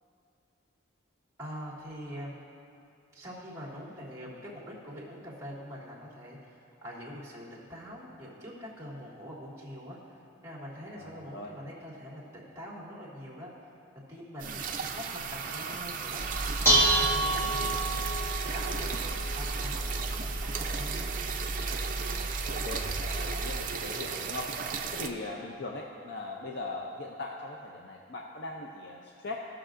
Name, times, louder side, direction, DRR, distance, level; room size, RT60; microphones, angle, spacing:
voice 1, 1.4-2.4 3.1-13.7 14.1-16.2 16.7-21.1, equal, 15° right, -5 dB, 1.9 m, -44 dB
voice 2, 10.8-11.5 14.4-14.6 22.4-24.5 24.9-29.5, left 2 dB, 55° left, 0 dB, 0.6 m, -40 dB
sound 1, 14.4-25.1, right 6 dB, 40° right, 0.5 m, -35 dB
Dishes pots and pans, 16.2-23.6, right 1 dB, 10° left, 1.5 m, -30 dB
18.0 x 6.4 x 2.5 m, 2.6 s
head